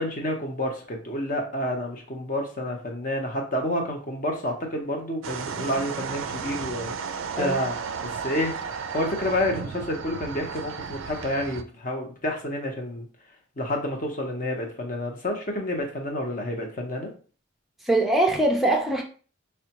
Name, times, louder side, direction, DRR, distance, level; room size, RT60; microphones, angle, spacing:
voice 1, 0.0-6.9 7.4-13.1 13.6-17.1, left 1 dB, 40° left, 0.8 m, -29 dB
sound 1, 5.2-11.6, right 6 dB, 70° right, 0.3 m, -34 dB
voice 2, 17.8-19.0, right 1 dB, ahead, 0.5 m, -22 dB
4.8 x 2.2 x 2.8 m
head